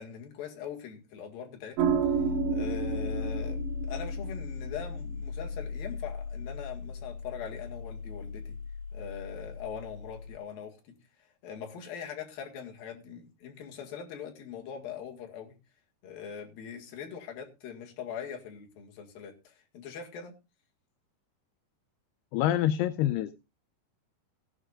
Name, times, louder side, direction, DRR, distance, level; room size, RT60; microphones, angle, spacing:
voice 1, 0.0-2.0 2.5-8.6 8.9-15.6 16.0-20.4, left 7 dB, 60° left, 2 dB, 3.4 m, -42 dB
sound 1, 1.8-10.3, right 2 dB, 80° right, 4.1 m, -33 dB
voice 2, 22.3-23.3, left 12 dB, 80° left, 10 dB, 2.6 m, -26 dB
17.5 x 11.5 x 2.5 m, 0.28 s
omnidirectional pair, 5.0 m